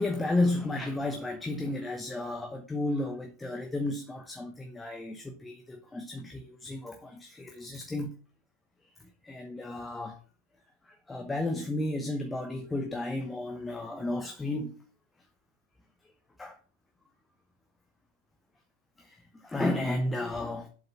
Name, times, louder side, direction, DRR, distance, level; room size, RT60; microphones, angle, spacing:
voice 1, 0.0-8.1 9.2-10.2 10.8-14.7 16.4-16.6 19.0-20.7, left 2 dB, 10° left, 0.9 m, -33 dB
7.7 x 4.9 x 5.6 m
figure-of-eight pair, 90°, 0 cm